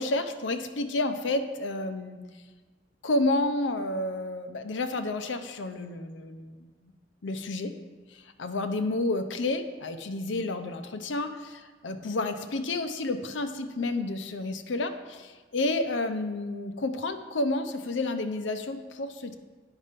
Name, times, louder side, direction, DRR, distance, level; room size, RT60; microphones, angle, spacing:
voice 1, 0.0-2.2 3.0-6.9 7.2-7.7 8.1-19.3, left 2 dB, 80° left, 9 dB, 0.6 m, -30 dB
9.1 x 5.4 x 5.1 m, 1.4 s
head